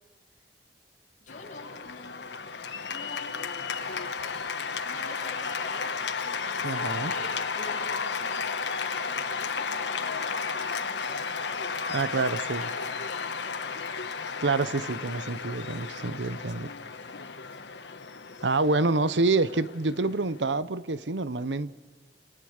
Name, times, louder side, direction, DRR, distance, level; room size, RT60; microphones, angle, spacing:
voice 1, 1.2-2.3 2.9-3.4 3.8-4.0 4.8-5.9 6.2-13.7 16.7-17.3, left 3 dB, 45° left, 7.7 m, -46 dB
Cheering / Applause, 1.3-20.5, left 5 dB, 75° left, 1.3 m, -33 dB
voice 2, 6.6-7.1 11.9-12.7 14.4-16.7 18.4-21.7, right 3 dB, 80° right, 0.9 m, -27 dB
29.0 x 27.5 x 6.6 m
head